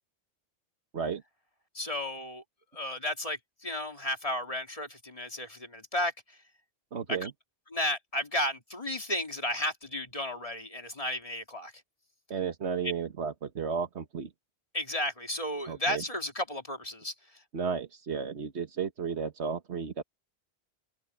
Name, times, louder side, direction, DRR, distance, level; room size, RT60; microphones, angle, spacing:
voice 1, 1.7-2.4 2.7-6.4 7.1-7.3 7.7-11.7 12.8-12.9 14.7-17.4, left 1 dB, 30° left, 2.3 m, -33 dB
voice 2, 6.9-7.3 12.3-14.3 15.7-16.0 17.5-19.9, right 6 dB, 70° right, 1.5 m, -33 dB
omnidirectional pair, 1.2 m